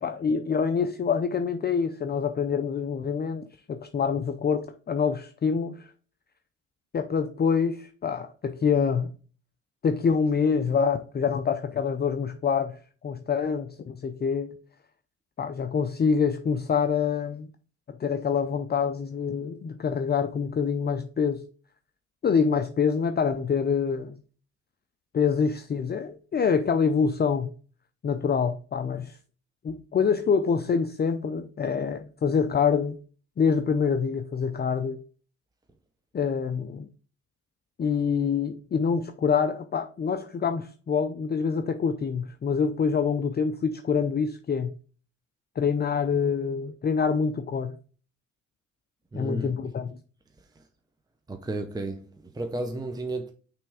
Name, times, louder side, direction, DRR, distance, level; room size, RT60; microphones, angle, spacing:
voice 1, 0.0-5.9 6.9-9.1 9.8-12.8 13.0-14.5 15.4-17.5 17.9-21.4 22.2-24.2 25.1-27.5 28.0-29.2 29.6-33.0 33.4-35.0 36.1-36.9 37.8-44.7 45.6-47.8 49.1-50.0, left 6 dB, 35° left, 0.6 m, -26 dB
voice 2, 49.1-49.6 51.3-53.3, right 2 dB, 15° right, 0.7 m, -33 dB
5.9 x 3.4 x 4.8 m
cardioid pair, 90°, 30 cm